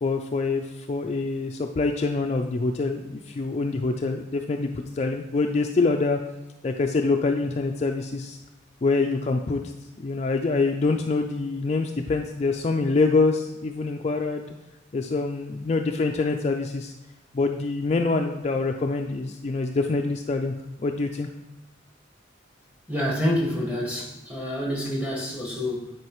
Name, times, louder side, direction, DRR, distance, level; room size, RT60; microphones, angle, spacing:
voice 1, 0.0-6.2 6.6-8.4 8.8-9.6 10.0-14.5 14.9-16.9 17.3-20.5 20.8-21.3, left 3 dB, 35° left, 4 dB, 0.3 m, -25 dB
voice 2, 22.9-25.9, equal, 10° right, -3 dB, 1.5 m, -27 dB
9.5 x 4.7 x 3.0 m, 1.0 s
head